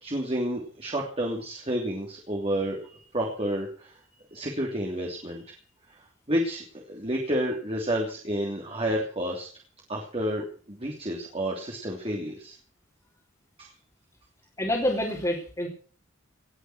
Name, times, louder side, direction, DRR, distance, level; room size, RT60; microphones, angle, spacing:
voice 1, 0.0-4.0 4.3-5.4 6.3-9.5 9.9-12.5 13.6-13.7, equal, 30° right, -1 dB, 3.1 m, -30 dB
voice 2, 14.6-15.7, left 1 dB, 15° left, -3 dB, 3.5 m, -27 dB
19.0 x 7.9 x 8.0 m, 0.42 s
head